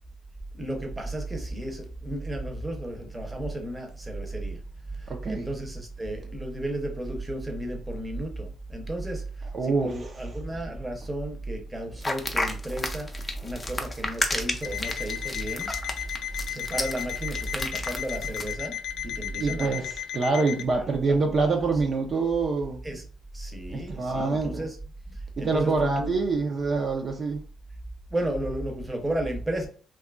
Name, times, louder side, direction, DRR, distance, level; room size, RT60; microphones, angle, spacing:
voice 1, 0.5-4.6 4.9-13.1 13.4-15.7 16.5-19.9 20.7-20.8 21.1-21.2 22.8-23.0 23.3-24.8 25.1-26.1 28.1-29.7, right 1 dB, 15° right, 0.8 m, -33 dB
voice 2, 5.1-5.5 9.5-9.9 19.4-22.8 23.7-24.7 25.4-27.4, right 3 dB, 50° right, 0.6 m, -26 dB
sound 1, 12.0-18.5, left 2 dB, 20° left, 0.6 m, -31 dB
Alarm, 14.6-20.7, left 10 dB, 70° left, 0.4 m, -35 dB
2.8 x 2.3 x 2.4 m
supercardioid pair, 70°, 0 cm